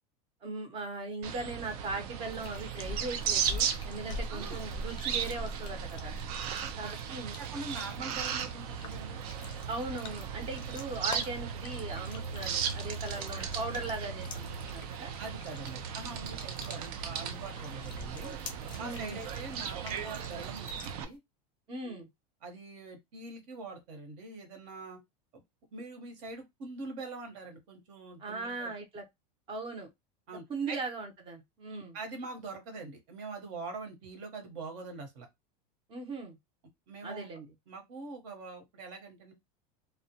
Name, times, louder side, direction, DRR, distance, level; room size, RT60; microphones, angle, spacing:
voice 1, 0.4-6.2 6.8-7.4 9.7-15.1 18.8-19.2 21.7-22.1 28.2-29.0 29.5-29.9 30.5-32.0 35.9-36.4 37.0-37.5, right 3 dB, 25° right, 0.6 m, -39 dB
sound 1, 1.2-21.0, right 7 dB, 75° right, 0.5 m, -37 dB
sound 2, 2.3-21.2, left 2 dB, 25° left, 0.4 m, -46 dB
voice 2, 6.6-6.9 7.4-9.2 15.2-18.4 18.8-21.2 21.8-22.1 22.4-25.0 25.3-25.4 25.7-28.7 30.3-30.8 31.7-35.3 36.9-37.3 37.7-39.3, right 3 dB, 55° right, 1.0 m, -43 dB
2.1 x 2.1 x 2.8 m
supercardioid pair, 150°, 20 cm